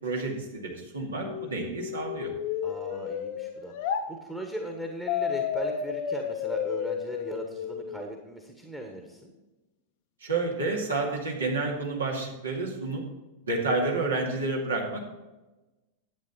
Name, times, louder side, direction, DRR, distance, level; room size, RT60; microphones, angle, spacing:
voice 1, 0.0-2.3 10.2-13.0 13.4-15.0, right 3 dB, 70° right, -1 dB, 2.3 m, -30 dB
sound 1, 1.2-4.0 5.1-8.1, left 8 dB, 50° left, 0.8 m, -32 dB
voice 2, 2.6-9.3, right 1 dB, 5° right, 2 dB, 1.4 m, -38 dB
11.0 x 8.5 x 4.2 m, 1.1 s
figure-of-eight pair, 90°, 0 cm